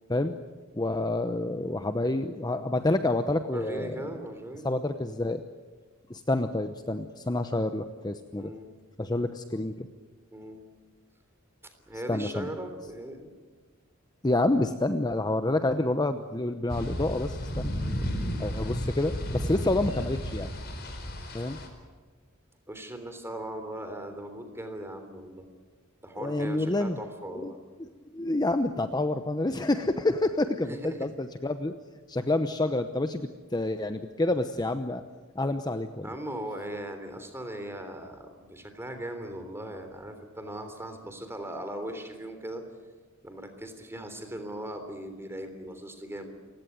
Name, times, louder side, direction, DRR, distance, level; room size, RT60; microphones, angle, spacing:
voice 1, 0.7-4.0 4.6-5.4 6.1-8.5 9.0-9.9 12.1-12.5 14.2-17.7 18.4-20.5 21.3-21.6 26.2-27.0 27.3-27.5 27.8-27.9 28.1-31.7 32.1-35.0 35.3-36.1, left 2 dB, 20° left, 8 dB, 0.9 m, -28 dB
voice 2, 3.5-4.7 8.4-8.7 10.3-10.6 11.9-13.3 17.8-18.1 20.6-20.9 22.7-25.4 26.0-27.6 30.7-31.1 36.0-42.6 43.2-46.3, right 1 dB, 10° right, 7 dB, 3.4 m, -39 dB
sound 1, 16.7-21.7, equal, 50° left, 4.6 m, -33 dB
29.5 x 17.0 x 9.4 m, 1.4 s
head